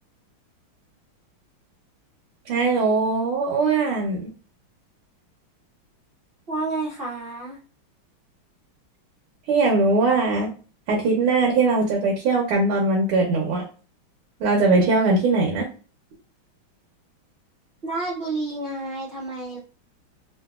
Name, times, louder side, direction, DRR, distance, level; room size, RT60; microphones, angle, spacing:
voice 1, 2.5-4.3 9.5-10.5 10.9-13.6 14.4-15.7, right 3 dB, 85° right, -2 dB, 1.7 m, -20 dB
voice 2, 6.5-7.6 17.8-19.6, right 2 dB, 65° right, -7 dB, 0.5 m, -30 dB
3.8 x 2.5 x 2.3 m, 0.36 s
omnidirectional pair, 2.3 m